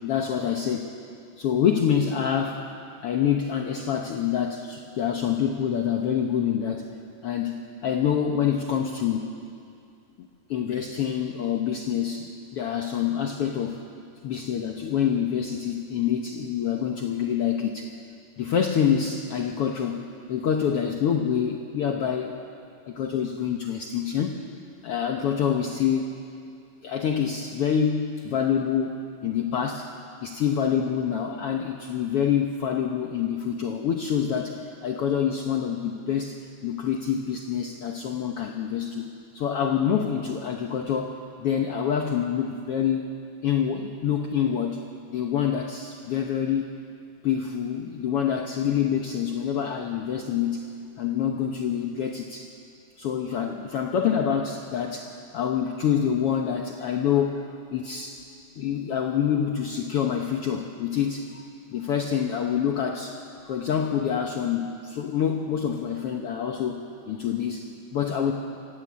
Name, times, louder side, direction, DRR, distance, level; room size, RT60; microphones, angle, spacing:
voice 1, 0.0-0.9 1.4-2.7 3.0-6.9 7.2-9.3 10.2-13.8 14.2-17.9 18.4-20.0 20.3-22.4 22.9-24.3 24.8-26.1 26.8-28.9 29.2-29.9 30.2-43.0 43.4-44.8 45.1-46.7 47.2-50.7 51.0-52.5 53.0-58.2 58.6-61.5 61.7-63.2 63.5-68.3, left 8 dB, 60° left, 3 dB, 1.7 m, -26 dB
25.0 x 16.5 x 8.5 m, 2.4 s
omnidirectional pair, 3.4 m